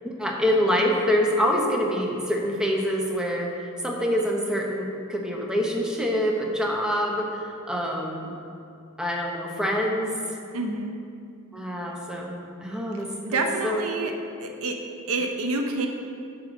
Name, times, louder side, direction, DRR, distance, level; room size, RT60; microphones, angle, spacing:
voice 1, 0.0-8.3 9.0-10.2 11.5-13.9, equal, 5° right, -1 dB, 0.9 m, -26 dB
voice 2, 10.5-10.9 13.2-14.1 14.4-14.8 15.1-15.9, right 3 dB, 70° right, 4 dB, 0.7 m, -27 dB
9.1 x 4.8 x 6.3 m, 2.5 s
head